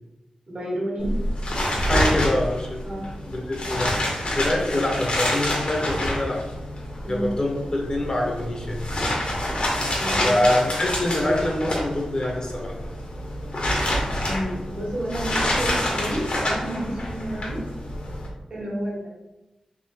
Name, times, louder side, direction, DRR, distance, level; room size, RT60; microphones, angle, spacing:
voice 1, 0.5-1.2 2.8-3.1 4.5-5.0 7.0-7.3 10.0-10.4 14.2-17.6 18.5-19.1, right 1 dB, 65° right, -4 dB, 1.4 m, -30 dB
sound 1, 1.0-18.3, left 1 dB, 60° left, 1.0 m, -27 dB
voice 2, 1.8-2.8 3.3-4.0 4.3-6.4 7.0-8.8 10.2-12.7, left 1 dB, 35° left, 0 dB, 0.7 m, -25 dB
3.6 x 2.8 x 2.7 m, 0.99 s
cardioid pair, 65°, 2 cm